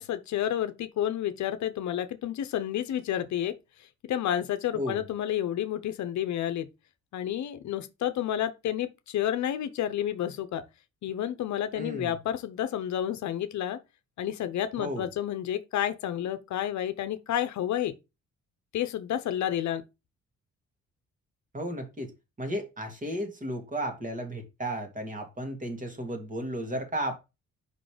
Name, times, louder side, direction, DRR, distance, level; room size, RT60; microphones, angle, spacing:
voice 1, 0.0-3.6 4.1-6.7 7.1-10.6 11.0-13.8 14.2-17.9 18.7-19.8, left 11 dB, 70° left, 0.7 m, -30 dB
voice 2, 11.7-12.1 14.8-15.1 21.5-22.1 22.4-27.2, right 1 dB, 25° right, 2.1 m, -34 dB
5.3 x 3.9 x 5.0 m
cardioid pair, 90°, 30 cm